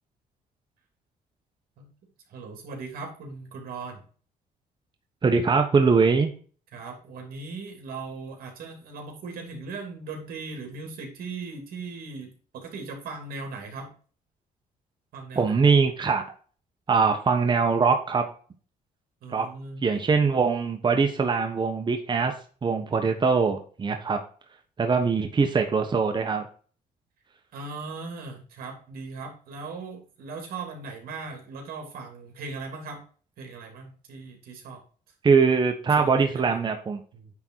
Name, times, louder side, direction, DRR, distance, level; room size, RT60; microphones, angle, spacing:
voice 1, 2.3-4.0 6.7-13.9 15.1-15.7 19.2-19.8 25.3-25.4 27.5-33.0 33.4-34.8 35.9-36.6 37.1-37.3, right 4 dB, 70° right, 2 dB, 3.0 m, -39 dB
voice 2, 5.2-6.3 15.3-16.2 16.9-18.2 19.3-19.5 19.8-22.3 22.6-24.2 24.8-26.5 35.2-37.0, right 5 dB, 30° right, 5 dB, 1.2 m, -22 dB
9.6 x 3.9 x 4.6 m, 0.41 s
cardioid pair, 110°, 16 cm